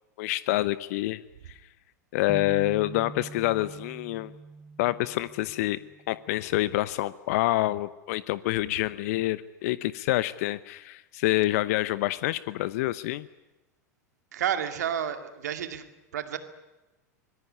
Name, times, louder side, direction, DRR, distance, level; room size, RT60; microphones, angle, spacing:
voice 1, 0.2-1.2 2.1-4.3 4.8-5.8 6.1-13.3, left 17 dB, 60° left, 17 dB, 0.8 m, -27 dB
sound 1, 2.3-6.3, right 3 dB, 5° right, 1.6 m, -44 dB
voice 2, 14.3-15.8 16.1-16.4, right 9 dB, 70° right, 9 dB, 2.3 m, -30 dB
24.5 x 21.0 x 9.7 m, 1.1 s
figure-of-eight pair, 85°, 9 cm